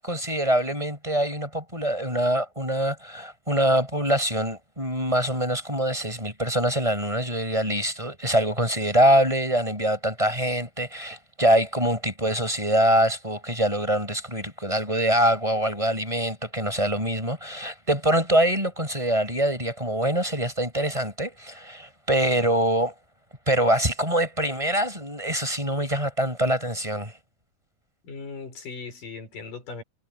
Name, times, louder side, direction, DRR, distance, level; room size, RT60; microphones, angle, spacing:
voice 1, 0.0-22.9 23.5-27.1, right 1 dB, 10° right, 7.3 m, -24 dB
voice 2, 28.0-29.8, left 4 dB, 65° left, 7.2 m, -38 dB
omnidirectional pair, 4.1 m